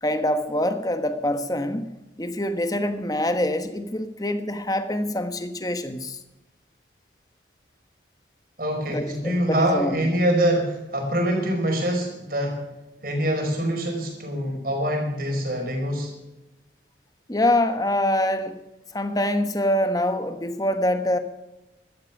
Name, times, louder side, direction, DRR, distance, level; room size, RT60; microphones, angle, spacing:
voice 1, 0.0-1.9 2.2-6.2 8.9-10.1 17.3-18.6 18.9-21.2, left 1 dB, 20° left, 8 dB, 1.1 m, -25 dB
voice 2, 8.6-12.6 13.0-16.1, equal, 50° right, 2 dB, 4.8 m, -24 dB
16.0 x 12.5 x 5.9 m, 0.99 s
head